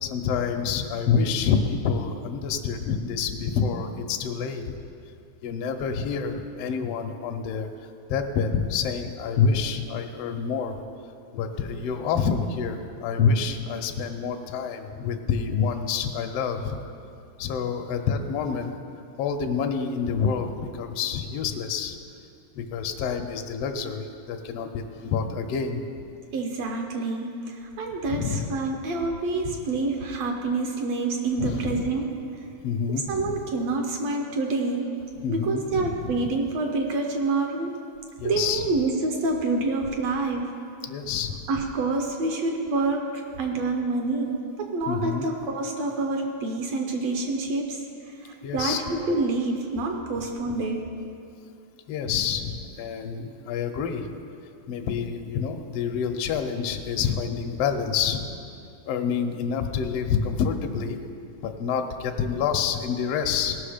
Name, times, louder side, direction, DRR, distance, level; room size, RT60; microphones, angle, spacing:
voice 1, 0.0-4.8 5.4-10.7 11.3-16.8 17.4-18.7 19.2-22.0 22.5-26.0 28.1-28.5 29.4-29.5 31.4-31.9 32.6-33.3 35.2-36.3 38.2-38.7 40.9-41.4 44.9-45.3 48.4-48.8 51.9-54.1 54.7-58.3 58.9-61.0 61.4-63.6, left 6 dB, 75° left, 4 dB, 1.4 m, -27 dB
voice 2, 26.3-32.1 33.1-34.9 35.3-37.8 38.2-40.5 41.5-50.9, right 3 dB, 70° right, 2 dB, 1.8 m, -27 dB
17.5 x 6.1 x 5.0 m, 2.5 s
omnidirectional pair, 3.5 m